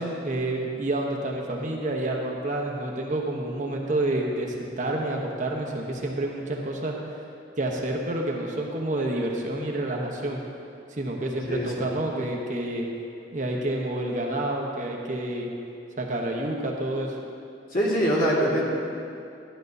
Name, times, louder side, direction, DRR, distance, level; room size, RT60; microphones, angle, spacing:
voice 1, 0.0-7.0 7.6-10.4 10.9-12.9 13.3-15.5 16.0-17.2, right 1 dB, 45° right, 0 dB, 1.0 m, -29 dB
voice 2, 11.5-11.9 17.7-18.7, equal, 50° left, -5 dB, 1.9 m, -24 dB
12.0 x 10.0 x 2.7 m, 2.5 s
head